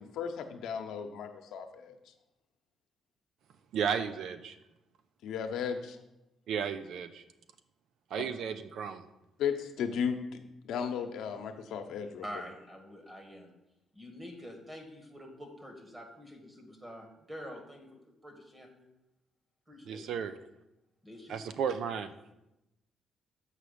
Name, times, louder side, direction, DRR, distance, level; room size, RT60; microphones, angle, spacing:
voice 1, 0.0-2.0 5.2-6.0 9.4-10.2 10.6-12.2, left 7 dB, 80° left, 5 dB, 0.9 m, -35 dB
voice 2, 3.7-4.6 6.5-7.2 8.1-9.0 19.9-20.3 21.3-22.1, right 7 dB, 75° right, 11 dB, 0.5 m, -34 dB
voice 3, 12.2-13.5 13.9-18.9 19.7-20.2 21.0-21.4, equal, 20° right, 3 dB, 2.0 m, -47 dB
7.4 x 4.9 x 6.7 m, 0.92 s
cardioid pair, 90°, 0 cm